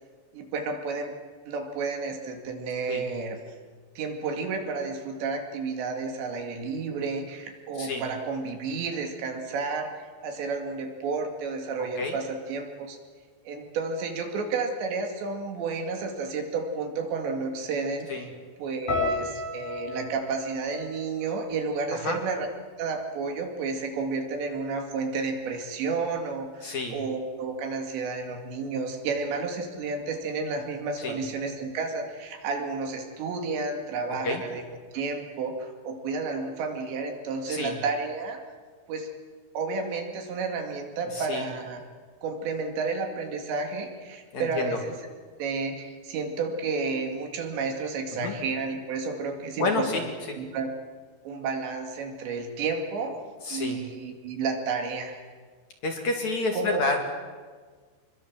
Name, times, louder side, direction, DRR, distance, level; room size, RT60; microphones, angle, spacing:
voice 1, 0.3-1.2 1.5-3.4 4.0-9.9 10.2-13.0 13.5-18.3 18.6-22.5 22.8-34.6 34.9-38.4 38.9-39.1 39.5-41.8 42.2-44.9 45.4-50.1 50.4-50.7 51.3-53.2 53.5-55.2 56.5-56.8, right 4 dB, 80° right, 4 dB, 4.6 m, -31 dB
sound 1, 18.9-23.1 23.3-24.1 24.7-24.9, left 3 dB, 70° left, 9.0 m, -35 dB
voice 2, 26.6-27.0 31.0-31.2 34.1-34.4 37.4-37.7 41.1-41.5 44.3-44.8 48.1-48.3 49.6-50.4 53.4-53.8 55.8-57.0, left 3 dB, 45° left, 2 dB, 3.1 m, -29 dB
26.0 x 22.0 x 7.5 m, 1.5 s
omnidirectional pair, 5.0 m